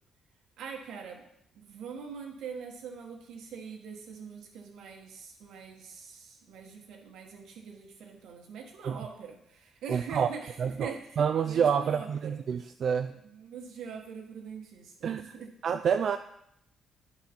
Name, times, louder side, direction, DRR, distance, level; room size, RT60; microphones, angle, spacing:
voice 1, 0.6-1.2 1.5-11.2 11.4-12.4 13.1-15.5, right 6 dB, 80° right, 1 dB, 1.3 m, -43 dB
voice 2, 9.9-10.3 10.6-13.2 15.0-15.4 15.6-16.2, right 7 dB, 60° right, 8 dB, 0.3 m, -28 dB
9.9 x 4.0 x 4.2 m, 0.78 s
cardioid pair, 90°, 0 cm